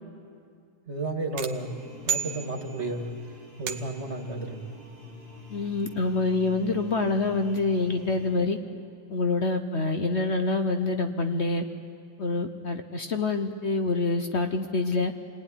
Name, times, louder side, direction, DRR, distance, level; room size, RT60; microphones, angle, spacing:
voice 1, 0.9-1.8 2.0-3.1 3.6-4.7, right 2 dB, 30° right, 3 dB, 2.1 m, -32 dB
sound 1, 1.4-3.0 3.7-4.2, right 8 dB, 75° right, 1.9 m, -33 dB
sound 2, 1.5-8.3, left 4 dB, 70° left, 8.6 m, -47 dB
voice 2, 5.5-8.6 9.1-11.6 12.2-15.1, left 3 dB, 50° left, 6 dB, 0.8 m, -26 dB
28.5 x 19.0 x 10.0 m, 2.4 s
omnidirectional pair, 2.4 m